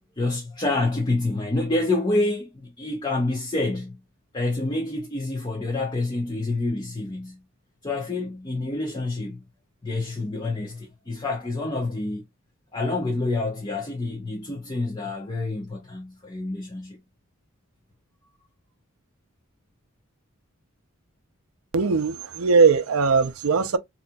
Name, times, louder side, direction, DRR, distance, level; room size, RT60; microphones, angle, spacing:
voice 1, 0.2-4.0 4.3-7.4 7.8-9.4 9.8-12.2 12.7-17.0, left 2 dB, 20° left, 0.8 m, -27 dB
voice 2, 21.7-23.8, right 5 dB, 85° right, 0.5 m, -20 dB
4.0 x 2.8 x 2.2 m
head